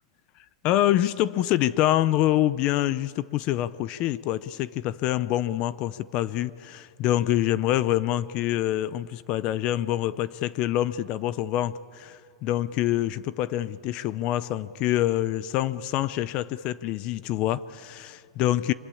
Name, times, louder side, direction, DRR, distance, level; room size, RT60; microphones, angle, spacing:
voice 1, 0.6-18.7, left 13 dB, 35° left, 17 dB, 0.6 m, -26 dB
25.0 x 22.5 x 8.6 m, 2.2 s
supercardioid pair, 155°, 3 cm